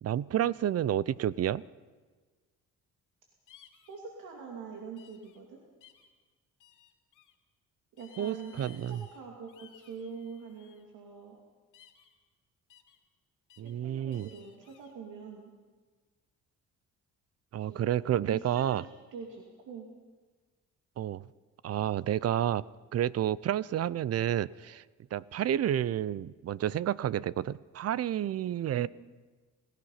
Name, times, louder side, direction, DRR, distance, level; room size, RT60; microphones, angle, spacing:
voice 1, 0.0-1.6 8.2-9.0 13.6-14.3 17.5-18.8 21.0-21.2 21.6-22.6 22.9-24.8 25.1-28.9, right 11 dB, 55° right, 20 dB, 0.6 m, -30 dB
sound 1, 3.5-4.0 5.0-5.4 5.8-6.1 6.6-7.3 8.0-9.2 9.5-10.8 11.7-12.1 12.7-13.0 13.5-13.7 14.1-14.9, left 9 dB, 85° left, 2.4 m, -58 dB
voice 2, 3.9-5.6 8.0-11.4 13.6-15.5 17.6-17.9 18.2-19.9 28.7-28.9, right 5 dB, 85° right, 0 dB, 2.8 m, -45 dB
28.0 x 17.0 x 5.8 m, 1.4 s
cardioid pair, 90°, 30 cm